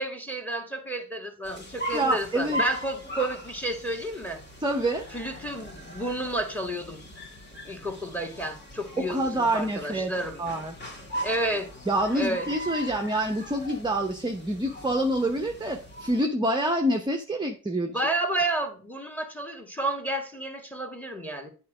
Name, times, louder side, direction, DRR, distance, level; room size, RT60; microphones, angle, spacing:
voice 1, 0.0-4.4 5.1-7.1 7.6-10.4 11.2-11.7 12.1-12.5 17.8-21.5, right 1 dB, 5° left, 1.8 m, -31 dB
sound 1, 1.4-16.2, equal, 30° left, 1.9 m, -39 dB
voice 2, 1.9-2.6 4.6-5.1 9.0-10.1 10.4-10.7 11.9-17.9, right 1 dB, 10° right, 0.9 m, -27 dB
8.5 x 4.5 x 5.0 m
cardioid pair, 80°, 37 cm